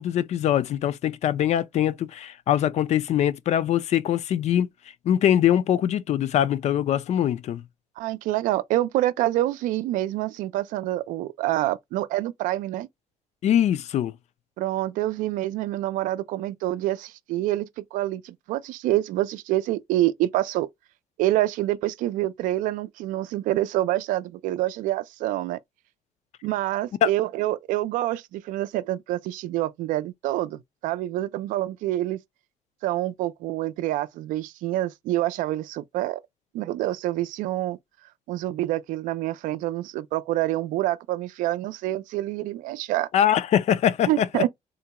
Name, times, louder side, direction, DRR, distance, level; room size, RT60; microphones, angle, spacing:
voice 1, 0.0-4.7 5.1-7.6 13.4-14.1 27.0-27.1 43.1-44.4, left 10 dB, 55° left, 0.4 m, -22 dB
voice 2, 8.0-12.9 14.6-20.7 21.2-25.6 26.4-32.2 32.8-36.2 36.5-37.8 38.3-43.1 44.1-44.5, right 15 dB, 90° right, 0.4 m, -27 dB
3.8 x 2.2 x 2.8 m
cardioid pair, 115°, 13 cm